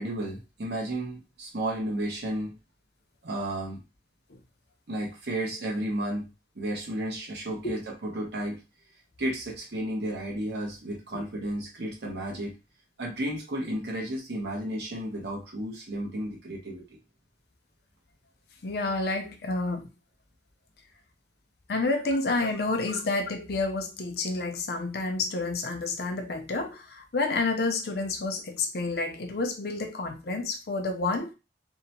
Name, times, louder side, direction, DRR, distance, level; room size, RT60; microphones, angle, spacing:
voice 1, 0.0-2.5 3.2-3.8 4.9-8.6 9.2-12.5 13.0-16.8 22.1-22.2, right 1 dB, 65° right, 0.8 m, -33 dB
voice 2, 18.6-19.9 21.7-31.3, left 3 dB, 60° left, 0.5 m, -29 dB
2.7 x 2.1 x 2.8 m
head